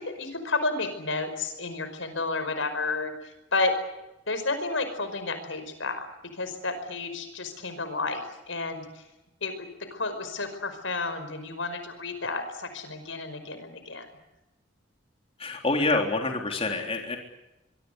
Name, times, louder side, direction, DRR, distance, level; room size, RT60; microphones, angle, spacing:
voice 1, 0.0-3.8 4.3-6.0 6.3-9.0 9.4-14.1, left 3 dB, 80° left, 9 dB, 5.3 m, -31 dB
voice 2, 15.4-17.2, left 2 dB, 30° left, 3 dB, 3.6 m, -27 dB
24.5 x 23.5 x 8.1 m, 0.95 s
head